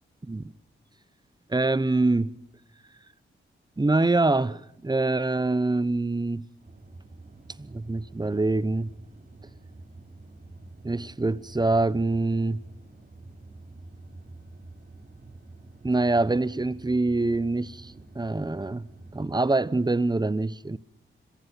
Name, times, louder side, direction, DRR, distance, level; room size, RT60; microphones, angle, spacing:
voice 1, 1.5-2.3 3.8-6.5 7.6-8.9 10.8-12.6 15.8-20.8, right 2 dB, 20° right, 0.9 m, -25 dB
sound 1, 6.6-19.4, right 2 dB, 40° right, 4.8 m, -48 dB
25.0 x 18.5 x 5.8 m
cardioid pair, 60°, 21 cm